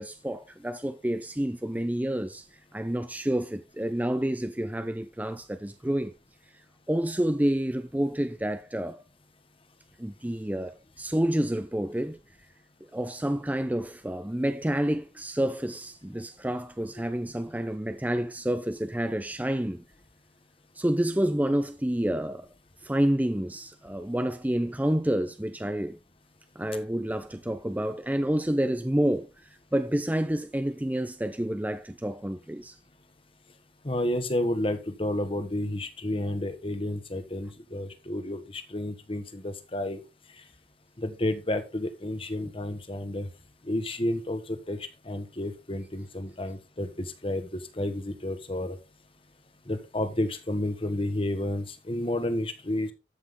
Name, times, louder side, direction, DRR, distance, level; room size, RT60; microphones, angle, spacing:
voice 1, 0.0-2.5 2.7-6.1 6.9-9.0 10.0-12.2 12.9-19.8 20.8-22.5 22.8-26.0 26.6-29.3 29.7-32.7 42.4-42.5, right 1 dB, 10° right, 0.6 m, -29 dB
voice 2, 33.8-40.0 41.0-43.3 43.6-48.8 49.7-52.9, left 1 dB, 30° left, 1.6 m, -31 dB
13.5 x 6.1 x 3.8 m
head